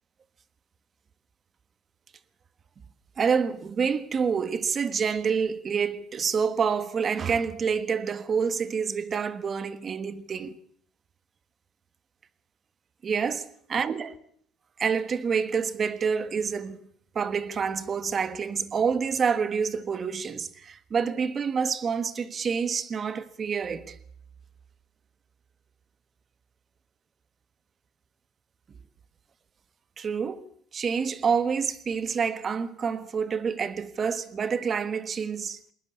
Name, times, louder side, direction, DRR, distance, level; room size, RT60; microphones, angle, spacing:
voice 1, 3.2-10.6 13.0-14.1 14.8-16.8 17.1-24.0 30.0-30.4 30.7-35.6, right 6 dB, 35° right, 1.4 m, -27 dB
20.5 x 19.5 x 8.6 m
cardioid pair, 140°, 0 cm